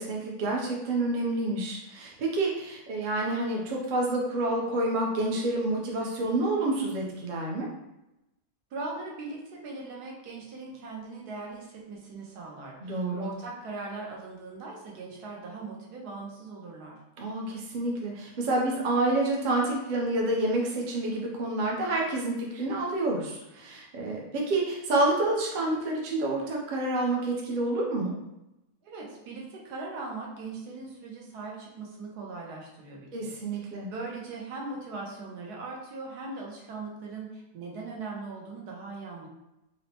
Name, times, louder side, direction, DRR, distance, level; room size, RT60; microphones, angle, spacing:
voice 1, 0.0-7.7 12.8-13.3 17.2-28.1 33.1-33.9, right 2 dB, 55° right, -2 dB, 0.5 m, -28 dB
voice 2, 8.7-17.0 28.8-39.3, right 3 dB, 80° right, -2 dB, 1.3 m, -40 dB
4.2 x 2.1 x 2.8 m, 0.91 s
omnidirectional pair, 1.7 m